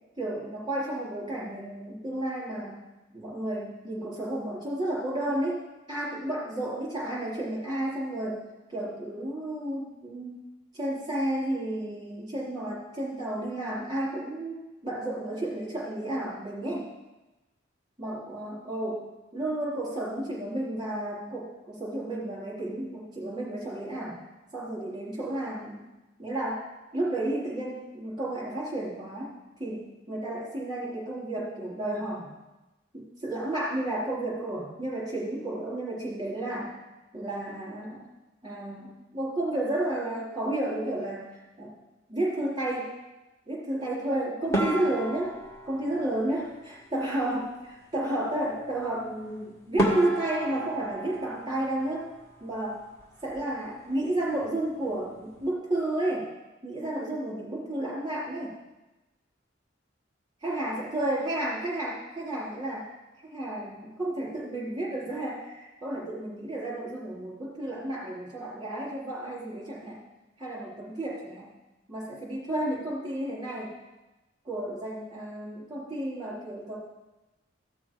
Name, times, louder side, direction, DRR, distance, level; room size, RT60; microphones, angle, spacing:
voice 1, 0.2-2.8 3.1-5.6 5.9-8.4 8.7-10.4 10.7-16.9 18.0-24.2 24.5-25.8 26.2-26.7 26.9-29.3 29.6-32.3 32.9-36.7 37.1-38.1 38.4-41.7 42.1-42.9 43.5-45.3 45.7-52.1 52.4-52.8 53.2-56.3 56.6-58.6 60.4-62.9 63.2-70.0 70.4-71.5 71.9-73.8 74.4-76.8, right 1 dB, 20° right, -6 dB, 4.1 m, -32 dB
sound 1, 44.5-47.0 49.2-49.3 49.8-52.5 52.8-53.6 53.9-54.1 54.4-54.5 55.1-55.4, right 1 dB, 15° left, 1.8 m, -32 dB
15.5 x 6.1 x 5.0 m, 1.1 s
head